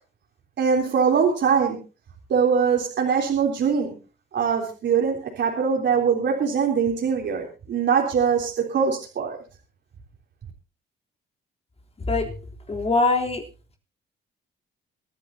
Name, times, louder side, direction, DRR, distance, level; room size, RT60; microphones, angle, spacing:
voice 1, 0.6-1.8 2.3-4.0 4.3-9.4, right 6 dB, 65° right, 0 dB, 3.6 m, -22 dB
voice 2, 12.0-12.3 12.7-13.4, left 3 dB, 30° left, 2 dB, 3.5 m, -22 dB
25.5 x 10.5 x 2.8 m, 0.33 s
cardioid pair, 90°, 20 cm